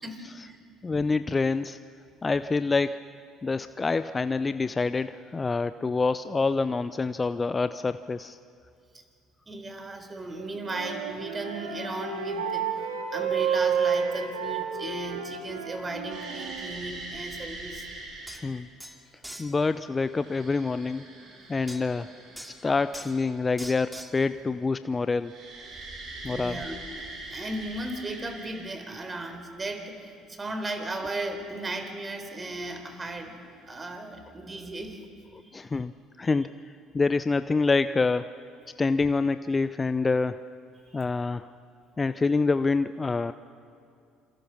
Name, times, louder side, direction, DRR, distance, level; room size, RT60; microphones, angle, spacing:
voice 1, 0.0-0.7 8.9-9.0 9.5-17.9 26.3-26.8 27.1-33.4 33.7-35.0 35.4-35.8 40.8-41.0, right 2 dB, 25° right, 7 dB, 4.0 m, -36 dB
voice 2, 0.8-1.8 2.2-3.0 3.4-8.4 18.3-18.7 19.4-21.1 21.5-22.1 22.6-25.3 26.2-26.6 35.5-35.9 36.2-36.5 36.9-38.3 38.8-40.4 40.9-41.5 42.0-43.3, left 4 dB, 25° left, 13 dB, 0.6 m, -26 dB
Wind instrument woodwind instrument, 10.3-16.8, right 6 dB, 85° right, 2.7 m, -31 dB
sound 1, 16.1-18.6 19.7-23.6 25.2-29.2 32.2-32.3 33.4-33.8, right 2 dB, 55° right, 6.4 m, -43 dB
sound 2, 18.0-18.1 18.3-18.4 18.8-19.5 21.7-21.8 22.4-22.6 22.9-23.2 23.6-24.2, right 1 dB, 5° right, 2.7 m, -42 dB
27.0 x 24.0 x 6.0 m, 2.5 s
hypercardioid pair, 60°, 0 cm